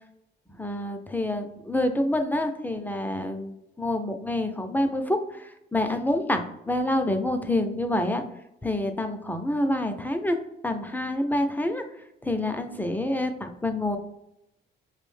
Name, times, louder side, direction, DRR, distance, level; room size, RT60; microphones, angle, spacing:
voice 1, 0.6-8.2 8.6-10.4 10.6-11.8 12.2-14.0, left 1 dB, 10° left, 6 dB, 0.4 m, -27 dB
4.9 x 2.0 x 3.1 m, 0.82 s
cardioid pair, 90°, 20 cm